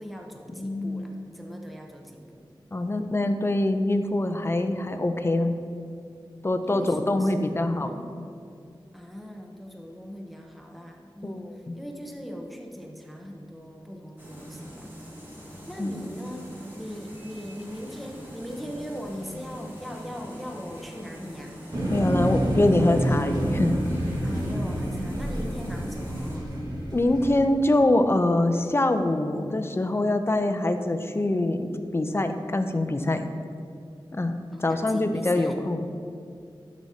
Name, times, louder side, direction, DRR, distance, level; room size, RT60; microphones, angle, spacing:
voice 1, 0.0-2.4 6.6-8.1 8.9-14.9 15.4-21.6 24.2-26.5 34.5-35.6, equal, ahead, 1 dB, 0.8 m, -40 dB
voice 2, 0.6-1.0 2.7-5.5 6.4-7.9 11.2-11.7 15.8-16.1 21.9-23.8 26.9-33.3 34.1-36.0, left 1 dB, 30° left, 7 dB, 0.5 m, -24 dB
sound 1, 14.2-26.4, equal, 25° right, 1.7 m, -43 dB
sound 2, 21.7-27.4, right 1 dB, 50° right, 1.7 m, -28 dB
11.5 x 6.3 x 2.8 m, 2.4 s
wide cardioid pair, 70°, 9 cm